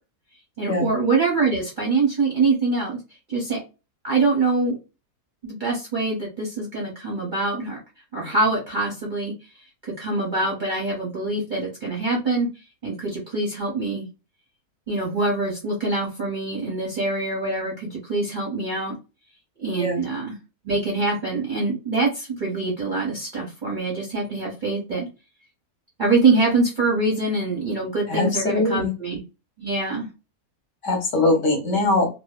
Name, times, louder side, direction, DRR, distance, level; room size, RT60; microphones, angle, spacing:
voice 1, 0.6-3.0 3.3-3.6 4.0-4.8 5.4-7.8 8.1-9.3 9.8-12.5 12.8-14.1 14.9-19.0 19.6-20.4 20.6-25.1 26.0-29.2 29.6-30.1, right 3 dB, 45° right, -3 dB, 0.7 m, -24 dB
voice 2, 28.1-28.9 30.8-32.1, left 2 dB, 60° left, 2 dB, 1.0 m, -21 dB
2.6 x 2.1 x 2.3 m, 0.29 s
omnidirectional pair, 1.7 m